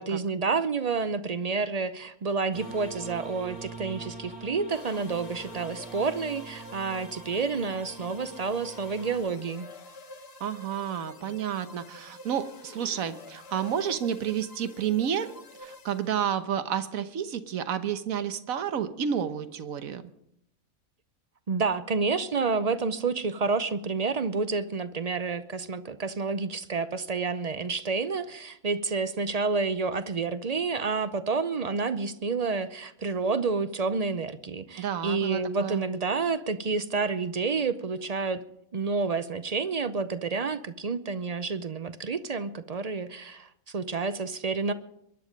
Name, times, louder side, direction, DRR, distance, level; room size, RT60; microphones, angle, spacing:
voice 1, 0.0-9.7 21.5-38.4 38.7-44.7, right 4 dB, 45° right, 12 dB, 0.5 m, -29 dB
sound 1, 2.5-9.2, right 3 dB, 5° right, 3.2 m, -43 dB
sound 2, 4.7-16.5, left 2 dB, 45° left, 1.4 m, -48 dB
voice 2, 10.4-15.3 15.6-20.0 34.8-35.9, right 8 dB, 75° right, 11 dB, 1.4 m, -30 dB
22.5 x 10.5 x 5.1 m, 0.76 s
omnidirectional pair, 1.5 m